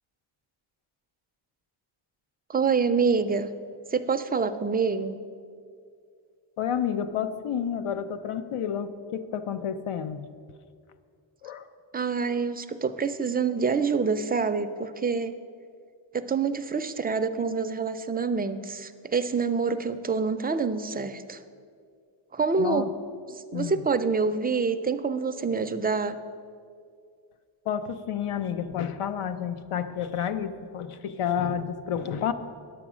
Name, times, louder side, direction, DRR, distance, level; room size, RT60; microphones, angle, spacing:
voice 1, 2.5-3.5 3.9-5.2 11.9-15.3 16.1-21.4 22.3-22.9 23.3-26.2, right 5 dB, 20° right, 8 dB, 0.3 m, -26 dB
voice 2, 6.6-10.3 11.4-11.7 22.6-22.9 23.5-23.7 27.7-32.3, left 8 dB, 85° left, 11 dB, 0.7 m, -30 dB
9.7 x 7.9 x 6.1 m, 2.2 s
wide cardioid pair, 150°, 49 cm